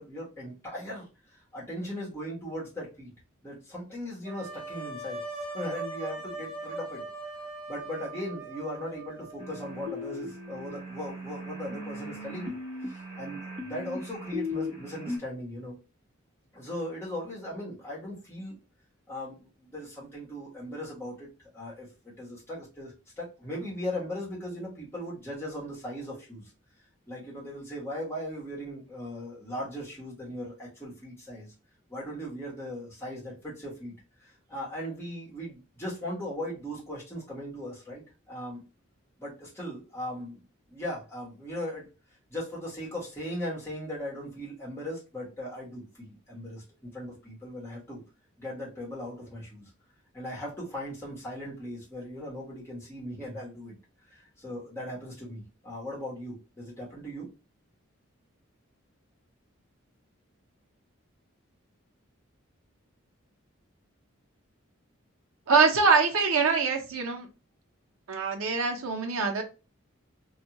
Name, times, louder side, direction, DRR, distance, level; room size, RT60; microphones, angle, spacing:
voice 1, 0.0-3.1 3.4-7.0 7.7-12.6 12.8-15.8 16.5-18.6 19.1-21.3 21.5-26.4 27.1-31.5 31.9-38.6 39.2-40.4 40.7-41.9 42.3-48.0 48.4-49.7 50.1-53.7 54.1-57.3, equal, 10° left, 1.3 m, -38 dB
sound 1, 4.2-10.1, right 2 dB, 60° right, 1.0 m, -40 dB
sound 2, 9.4-15.2, left 2 dB, 25° right, 1.2 m, -37 dB
voice 2, 65.5-67.3 68.1-69.4, right 5 dB, 85° right, 0.7 m, -24 dB
2.6 x 2.4 x 2.8 m
head